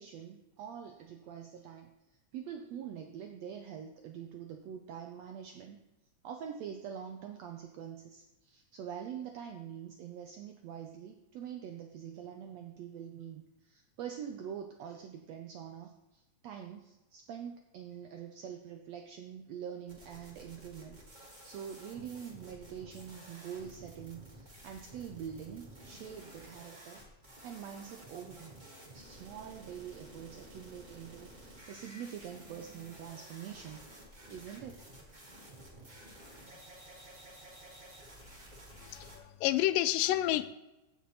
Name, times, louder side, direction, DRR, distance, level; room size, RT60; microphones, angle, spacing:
voice 1, 0.0-5.8 6.2-27.0 27.4-28.6 28.9-33.9 34.3-34.8, right 8 dB, 80° right, 4 dB, 1.5 m, -45 dB
sound 1, 19.9-39.2, right 1 dB, 20° right, 1.3 m, -52 dB
voice 2, 38.8-40.5, left 14 dB, 90° left, 13 dB, 2.2 m, -30 dB
15.5 x 6.1 x 4.1 m, 1.0 s
omnidirectional pair, 3.8 m